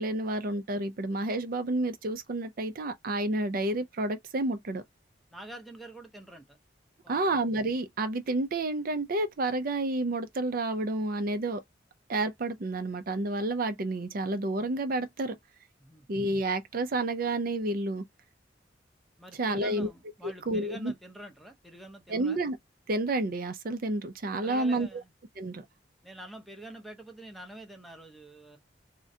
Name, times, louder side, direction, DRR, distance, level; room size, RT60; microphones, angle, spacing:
voice 1, 0.0-4.8 7.1-11.6 12.1-15.4 16.1-18.0 19.4-19.9 20.5-20.9 22.1-22.6 22.9-25.0 25.4-25.6, right 2 dB, 50° right, 0.5 m, -30 dB
voice 2, 5.3-6.6 7.0-7.4 15.8-16.1 19.2-22.4 24.4-25.1 26.0-28.6, right 1 dB, ahead, 0.8 m, -46 dB
3.7 x 2.1 x 2.7 m
head